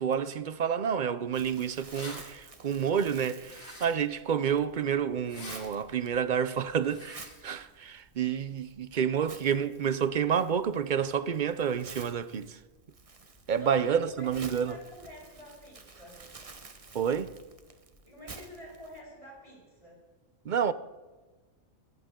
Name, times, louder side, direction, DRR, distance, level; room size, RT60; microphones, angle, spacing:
voice 1, 0.0-12.6 13.5-14.8 16.9-17.3 20.4-20.7, right 7 dB, 55° right, 0.5 m, -29 dB
Crumpling crinkling, 1.3-19.0, right 3 dB, 30° right, 1.0 m, -52 dB
sound 1, 1.9-2.2 3.5-4.1 5.2-5.6 6.8-7.3, left 2 dB, 80° left, 4.2 m, -44 dB
voice 2, 13.6-16.3 18.0-20.0, equal, 25° left, 6.7 m, -48 dB
22.0 x 14.5 x 3.7 m
omnidirectional pair, 1.4 m